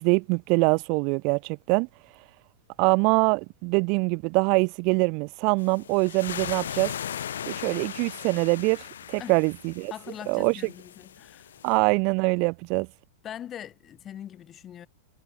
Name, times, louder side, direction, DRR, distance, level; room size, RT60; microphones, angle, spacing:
voice 1, 0.0-1.9 2.8-6.9 7.5-9.9 10.3-10.6 11.6-12.9, right 34 dB, 50° right, 0.7 m, -24 dB
sound 1, 5.6-11.8, left 9 dB, 75° left, 5.5 m, -38 dB
voice 2, 9.9-11.5 13.2-14.9, left 10 dB, 30° left, 7.6 m, -41 dB
hypercardioid pair, 100°, 0 cm